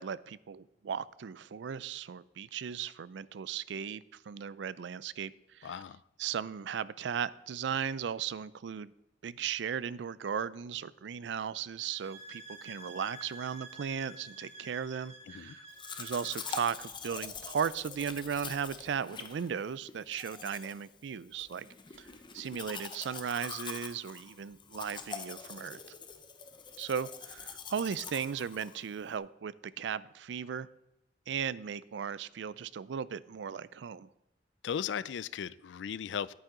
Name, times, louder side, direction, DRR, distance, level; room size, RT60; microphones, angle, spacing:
voice 1, 0.0-5.8 6.2-8.9 9.2-15.7 16.0-21.7 22.0-22.1 22.3-25.8 26.8-30.7 31.3-34.1, right 7 dB, 75° right, 18 dB, 0.4 m, -36 dB
voice 2, 5.6-6.0 15.3-15.6 34.6-36.3, left 8 dB, 80° left, 18 dB, 0.4 m, -37 dB
sound 1, 11.8-16.8, right 1 dB, 40° right, 2.3 m, -50 dB
Domestic sounds home sounds, 15.8-29.2, left 5 dB, 25° left, 0.7 m, -44 dB
10.5 x 9.1 x 3.8 m, 0.93 s
head